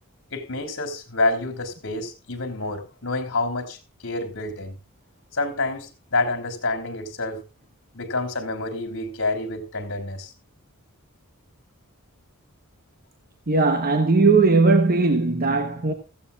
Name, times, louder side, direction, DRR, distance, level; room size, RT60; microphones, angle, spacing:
voice 1, 0.3-4.8 5.3-7.4 7.9-10.3, left 2 dB, 60° left, 3.3 m, -28 dB
voice 2, 13.5-15.9, right 3 dB, 40° right, 1.2 m, -18 dB
15.5 x 15.0 x 2.5 m
head